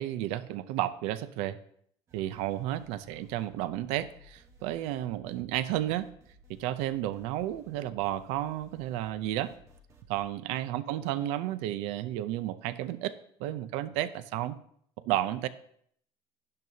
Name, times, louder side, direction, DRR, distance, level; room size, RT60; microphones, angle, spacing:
voice 1, 0.0-1.6 2.1-6.1 6.5-9.5 10.1-13.1 13.4-14.6 15.1-15.5, right 13 dB, 80° right, 14 dB, 0.6 m, -32 dB
sound 1, 2.1-10.2, left 1 dB, 30° right, 1.1 m, -58 dB
12.0 x 11.0 x 2.8 m, 0.64 s
cardioid pair, 175°, 10 cm